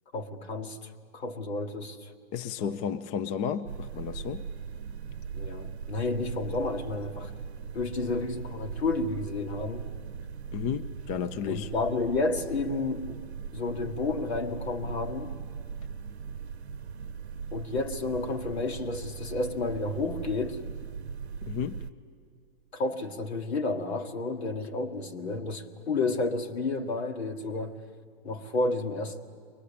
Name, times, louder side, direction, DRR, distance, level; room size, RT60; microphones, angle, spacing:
voice 1, 0.1-2.1 2.6-2.8 5.3-7.3 7.7-9.9 11.5-13.2 13.5-15.3 17.5-20.6 22.7-27.8 28.2-29.2, left 3 dB, 80° left, 1.9 m, -31 dB
voice 2, 2.3-4.5 10.5-11.7 21.4-21.8, left 8 dB, 25° left, 0.5 m, -33 dB
sound 1, 3.7-21.9, right 6 dB, 85° right, 0.8 m, -39 dB
23.5 x 19.5 x 8.5 m
hypercardioid pair, 130°, 32 cm